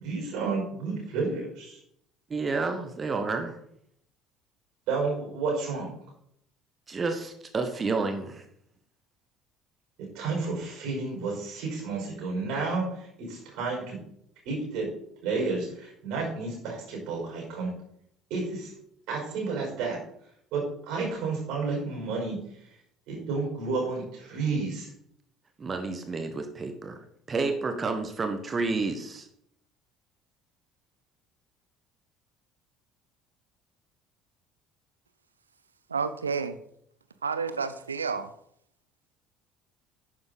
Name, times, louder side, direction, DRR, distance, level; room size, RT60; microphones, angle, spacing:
voice 1, 0.0-1.8 4.9-5.9 10.0-14.0 14.5-14.9 15.2-17.7 18.3-18.7 19.1-20.0 20.5-22.4 23.1-24.9, right 4 dB, 60° right, -1 dB, 5.4 m, -31 dB
voice 2, 2.3-3.6 6.9-8.4 25.6-27.0 27.3-29.3, right 3 dB, 30° right, 6 dB, 1.5 m, -30 dB
voice 3, 35.9-36.6 37.2-38.3, right 5 dB, 80° right, 12 dB, 0.7 m, -30 dB
11.0 x 9.6 x 4.1 m, 0.71 s
figure-of-eight pair, 60°, 0 cm